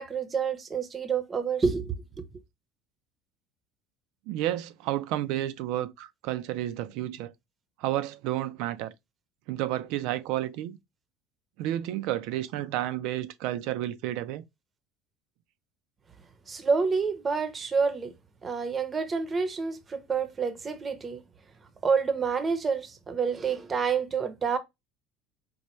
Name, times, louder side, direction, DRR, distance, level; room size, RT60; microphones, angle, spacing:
voice 1, 0.0-1.9 16.5-18.1 18.4-21.2 21.8-24.6, right 5 dB, 25° right, 0.7 m, -28 dB
voice 2, 4.3-7.3 7.8-8.9 9.5-10.8 11.6-14.4, right 14 dB, 70° right, 0.4 m, -31 dB
4.3 x 2.2 x 3.0 m
supercardioid pair, 115°, 0 cm